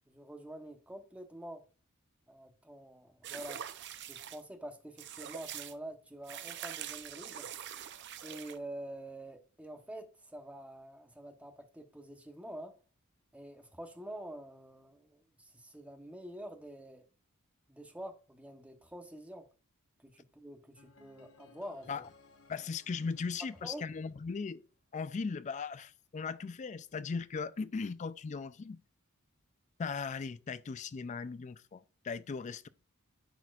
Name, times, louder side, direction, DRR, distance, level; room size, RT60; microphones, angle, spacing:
voice 1, 0.1-1.6 2.3-3.6 4.0-7.5 8.2-12.7 13.3-17.0 17.7-19.5 20.0-21.9 23.6-23.8, right 1 dB, 5° right, 0.9 m, -47 dB
sound 1, 3.2-4.4 5.0-5.7 6.3-8.6, right 10 dB, 55° right, 0.5 m, -44 dB
sound 2, 20.8-24.8, left 4 dB, 70° left, 1.0 m, -62 dB
voice 2, 22.5-24.6 24.9-28.8 29.8-32.7, left 5 dB, 35° left, 0.3 m, -38 dB
10.5 x 4.2 x 2.4 m
head